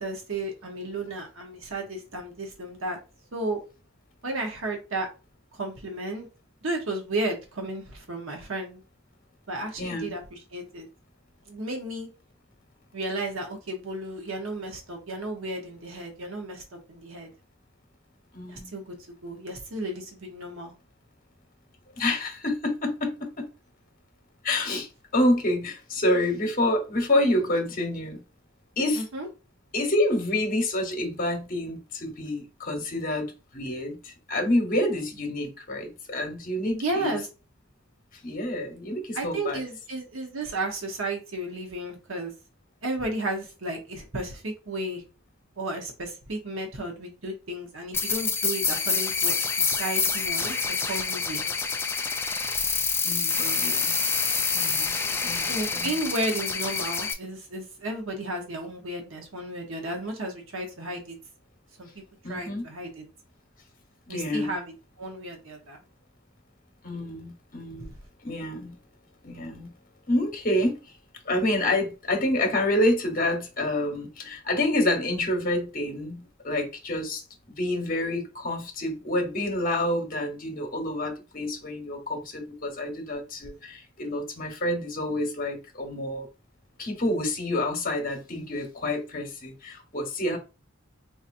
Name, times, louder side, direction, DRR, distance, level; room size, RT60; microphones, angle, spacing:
voice 1, 0.0-3.0 3.3-3.6 4.2-5.1 5.6-6.3 6.6-8.8 9.5-10.9 11.5-12.1 12.9-17.3 18.5-18.9 19.2-20.7 28.9-29.3 36.7-37.3 39.1-42.3 42.8-45.0 45.6-50.6 50.9-51.5 55.5-61.2 61.8-61.9 62.3-63.0 64.1-64.6 65.0-65.8 67.8-67.9, right 1 dB, 85° right, 1.0 m, -33 dB
voice 2, 9.8-10.1 18.3-18.7 21.9-23.5 24.4-28.2 28.8-29.0 29.7-37.2 38.2-39.6 53.0-54.0 54.5-56.0 62.2-62.6 64.1-64.5 66.8-67.9 68.2-68.8 69.2-69.7 70.1-70.8 71.2-86.3 86.8-90.4, left 1 dB, 45° left, 1.0 m, -28 dB
sound 1, 47.9-57.1, left 5 dB, 10° left, 0.3 m, -27 dB
3.9 x 2.8 x 2.6 m
head